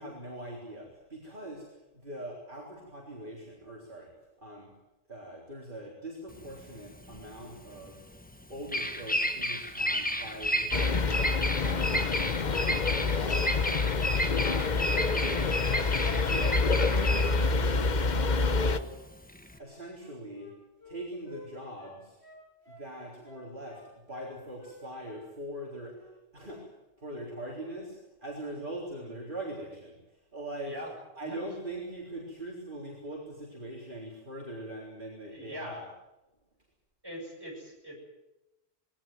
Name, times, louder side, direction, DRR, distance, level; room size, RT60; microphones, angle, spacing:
voice 1, 0.0-4.7 5.1-8.0 8.5-12.1 12.4-16.8 17.4-19.0 19.6-20.5 20.8-22.2 22.7-30.8 31.2-35.9, right 1 dB, 45° right, -3 dB, 4.4 m, -42 dB
Bird vocalization bird call bird song, 6.3-19.6, equal, 10° left, 1.7 m, -32 dB
sound 1, 10.7-18.8, left 4 dB, 40° left, 1.0 m, -27 dB
Wind instrument woodwind instrument, 19.5-21.5 21.8-22.9 23.2-23.9 24.1-24.8 25.0-25.2 25.5-26.1 26.4-26.6, left 2 dB, 70° left, 8.4 m, -51 dB
voice 2, 35.3-35.8 37.0-38.0, equal, 20° right, -1 dB, 7.4 m, -42 dB
21.0 x 18.0 x 9.3 m, 0.98 s
omnidirectional pair, 1.2 m